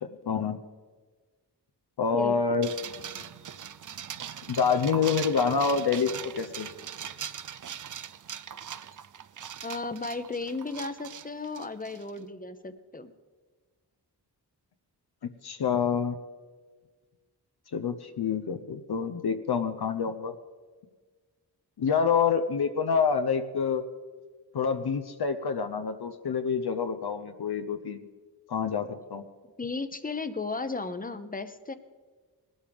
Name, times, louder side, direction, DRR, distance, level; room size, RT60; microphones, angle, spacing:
voice 1, 0.0-0.6 2.0-2.7 4.5-6.7 15.2-16.2 17.7-20.3 21.8-23.8 24.5-28.0 28.5-29.2, left 6 dB, 70° left, 7 dB, 0.8 m, -27 dB
sound 1, 2.6-12.2, right 9 dB, 50° right, 0.5 m, -40 dB
voice 2, 9.6-13.1 29.6-31.7, left 3 dB, 20° left, 10 dB, 0.8 m, -35 dB
19.0 x 12.5 x 3.5 m, 1.4 s
wide cardioid pair, 80°, 40 cm